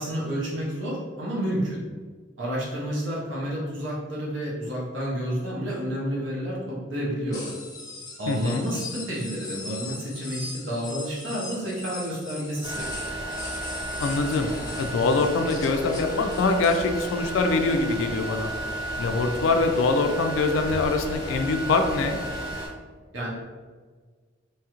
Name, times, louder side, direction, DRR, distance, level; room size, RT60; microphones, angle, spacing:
voice 1, 0.0-1.8 2.4-7.5 8.2-13.0 23.1-23.3, equal, 80° right, -5 dB, 0.8 m, -30 dB
sound 1, 7.3-16.8, left 3 dB, 20° left, 0.5 m, -40 dB
voice 2, 8.3-8.7 14.0-14.5 14.8-18.5 19.0-22.2, left 3 dB, 90° left, 5 dB, 0.3 m, -24 dB
sound 2, 12.6-22.7, right 1 dB, 25° right, 0.8 m, -33 dB
3.0 x 2.4 x 2.9 m, 1.5 s
head